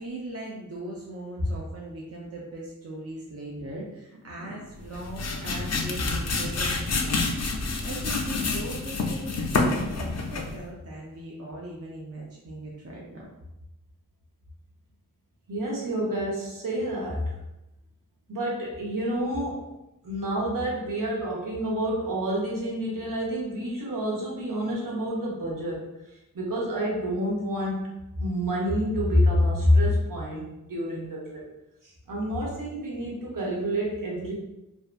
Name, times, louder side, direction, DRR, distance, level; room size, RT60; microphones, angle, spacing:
voice 1, 0.0-13.3, right 1 dB, 50° right, -4 dB, 0.5 m, -39 dB
sound 1, 4.8-10.6, left 3 dB, 55° left, 0.4 m, -28 dB
voice 2, 15.5-17.3 18.3-19.6 20.0-25.9 26.3-27.9 28.2-30.4 30.7-31.4 31.8-34.3, equal, 75° right, -4 dB, 0.8 m, -27 dB
2.6 x 2.2 x 2.4 m, 0.94 s
wide cardioid pair, 70°, 32 cm